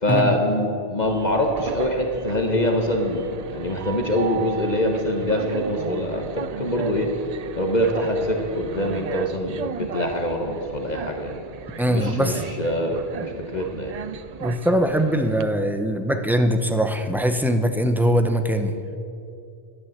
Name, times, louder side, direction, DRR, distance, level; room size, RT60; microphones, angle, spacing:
voice 1, 0.0-7.1 7.5-11.4 11.9-13.9, left 1 dB, 45° left, 3 dB, 1.2 m, -24 dB
Train, 1.0-15.4, right 7 dB, 55° right, 0.4 m, -36 dB
voice 2, 11.8-12.4 14.4-18.7, equal, ahead, 6 dB, 0.7 m, -21 dB
11.5 x 11.0 x 7.3 m, 2.5 s
omnidirectional pair, 1.1 m